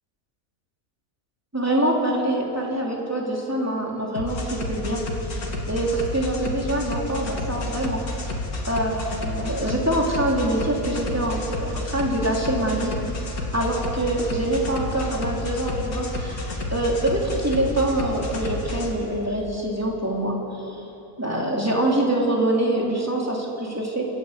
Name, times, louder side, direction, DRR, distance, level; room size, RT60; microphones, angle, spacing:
voice 1, 1.5-5.0 5.7-8.0 8.6-12.9 13.5-20.8 21.2-24.0, right 1 dB, 10° right, -2 dB, 3.1 m, -25 dB
sound 1, 4.1-18.9, left 2 dB, 65° left, 2.6 m, -30 dB
28.5 x 12.0 x 8.0 m, 2.9 s
omnidirectional pair, 1.6 m